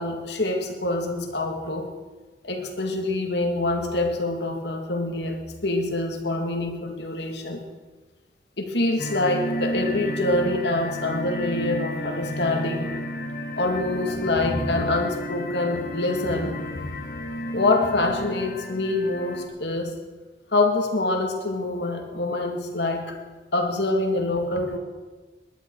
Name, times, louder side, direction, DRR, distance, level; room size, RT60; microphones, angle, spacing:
voice 1, 0.0-1.9 2.4-7.6 8.6-12.9 13.6-16.6 17.5-19.9 20.5-23.2 23.5-24.8, left 2 dB, 80° left, 3 dB, 2.2 m, -25 dB
sound 1, 9.0-19.5, left 1 dB, 50° left, 1.7 m, -32 dB
19.5 x 11.5 x 4.7 m, 1.3 s
head